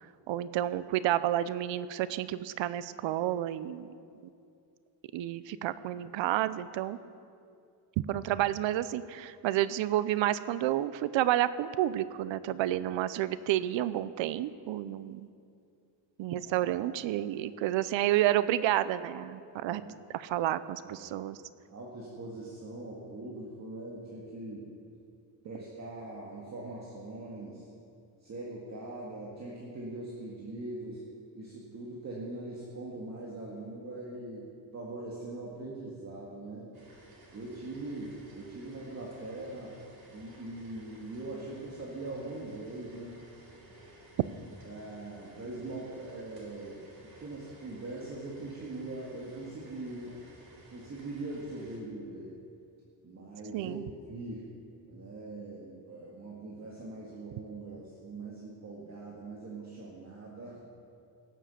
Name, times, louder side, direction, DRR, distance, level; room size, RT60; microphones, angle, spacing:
voice 1, 0.3-3.9 5.1-7.0 8.1-15.3 16.2-21.4 53.5-53.8, right 13 dB, 90° right, 15 dB, 0.6 m, -30 dB
voice 2, 16.3-16.7 19.6-20.0 21.0-21.1 21.7-24.7 25.4-27.7 28.2-31.0 31.3-34.5 34.7-36.7 37.3-39.7 40.1-43.2 44.6-46.8 47.2-50.2 50.7-52.4 53.0-53.8 54.1-54.5 54.9-60.6, right 2 dB, 35° right, -4 dB, 1.9 m, -42 dB
sound 1, 36.7-51.8, right 1 dB, 55° right, 3.7 m, -55 dB
17.5 x 7.5 x 6.8 m, 2.4 s
cardioid pair, 135°, 44 cm